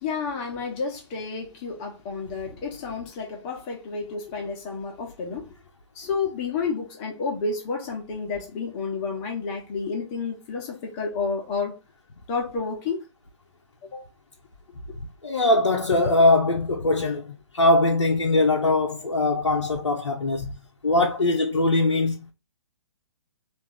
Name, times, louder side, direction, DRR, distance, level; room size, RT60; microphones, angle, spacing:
voice 1, 0.0-5.5 5.9-11.8 12.3-13.0 13.9-14.0, left 4 dB, 25° left, 1.0 m, -30 dB
voice 2, 15.2-20.6 20.8-22.3, left 2 dB, 70° left, 0.7 m, -21 dB
3.5 x 2.6 x 3.5 m
figure-of-eight pair, 130°, 15 cm